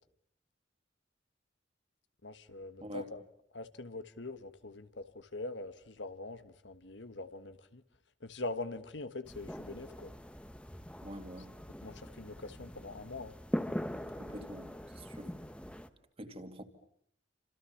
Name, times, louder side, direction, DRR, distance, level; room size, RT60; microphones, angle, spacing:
voice 1, 2.2-3.2 3.5-7.8 8.2-10.2 11.8-13.4, left 2 dB, 75° left, 1.5 m, -43 dB
sound 1, 9.3-15.9, equal, 5° left, 1.2 m, -42 dB
voice 2, 11.0-11.5 14.2-15.3 16.2-16.6, equal, 30° right, 2.6 m, -46 dB
29.5 x 26.5 x 7.2 m
head